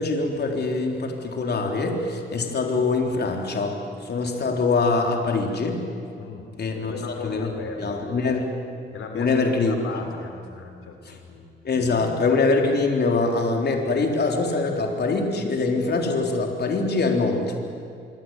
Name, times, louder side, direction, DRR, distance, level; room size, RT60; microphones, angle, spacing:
voice 1, 0.0-3.8 4.0-5.8 6.6-6.9 7.2-8.5 9.1-9.8 11.1-11.2 11.6-17.5, left 3 dB, 55° left, 2 dB, 3.9 m, -23 dB
voice 2, 6.8-8.2 8.9-11.6, left 4 dB, 80° left, 4 dB, 3.5 m, -37 dB
25.5 x 24.0 x 9.3 m, 2.5 s
cardioid pair, 90°, 20 cm